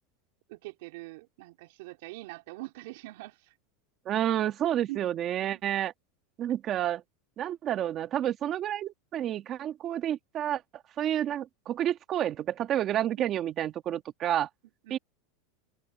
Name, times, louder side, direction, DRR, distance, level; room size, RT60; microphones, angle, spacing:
voice 1, 0.5-3.5 4.9-5.0 14.8-15.0, right 21 dB, 70° right, 4.4 m, -43 dB
voice 2, 4.1-5.9 6.4-7.0 7.4-10.6 11.0-14.5 14.9-15.0, right 11 dB, 35° right, 1.7 m, -29 dB
open air
supercardioid pair, 145°, 0 cm